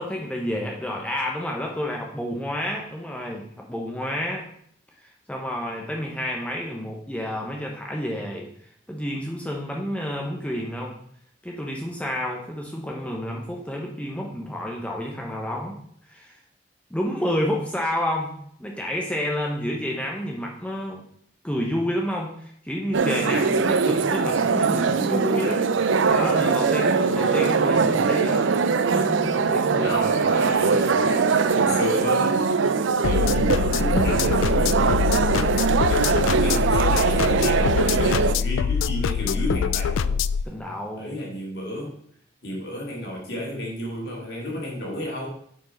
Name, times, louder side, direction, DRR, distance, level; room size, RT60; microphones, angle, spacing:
voice 1, 0.0-3.4 3.7-4.4 5.3-8.5 8.9-11.0 11.4-15.8 16.1-16.4 16.9-21.0 21.4-25.7 26.1-28.5 28.9-30.0 40.4-41.2, equal, 5° left, -1 dB, 0.8 m, -29 dB
sound 1, 22.9-38.4, right 5 dB, 80° right, 0.5 m, -21 dB
voice 2, 29.8-32.4 33.0-35.0 35.3-40.2 41.0-42.0 42.4-45.3, left 1 dB, 55° left, -2 dB, 2.3 m, -32 dB
sound 2, 33.0-40.4, left 6 dB, 90° left, 0.3 m, -24 dB
7.4 x 4.7 x 5.3 m, 0.65 s
head